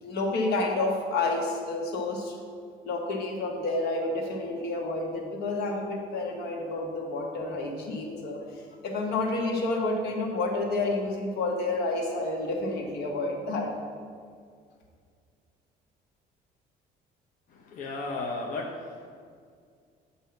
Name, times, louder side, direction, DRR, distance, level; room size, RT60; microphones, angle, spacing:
voice 1, 0.0-2.4 2.8-8.4 8.8-13.7, left 2 dB, 75° left, 1 dB, 1.0 m, -29 dB
voice 2, 17.5-19.1, left 2 dB, 50° left, -1 dB, 0.6 m, -35 dB
7.6 x 2.7 x 5.7 m, 2.1 s
cardioid pair, 110°, 17 cm